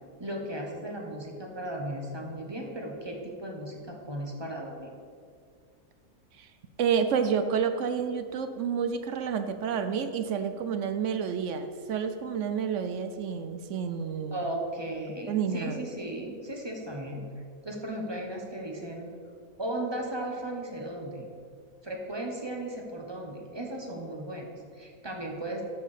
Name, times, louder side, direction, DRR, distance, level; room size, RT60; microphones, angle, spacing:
voice 1, 0.2-4.9 14.3-17.2 17.6-19.1 19.6-21.3 21.8-25.6, right 1 dB, 20° right, 0 dB, 1.0 m, -36 dB
voice 2, 6.8-14.5 15.3-15.8, right 7 dB, 65° right, 9 dB, 0.9 m, -29 dB
12.5 x 4.7 x 5.0 m, 2.2 s
omnidirectional pair, 1.5 m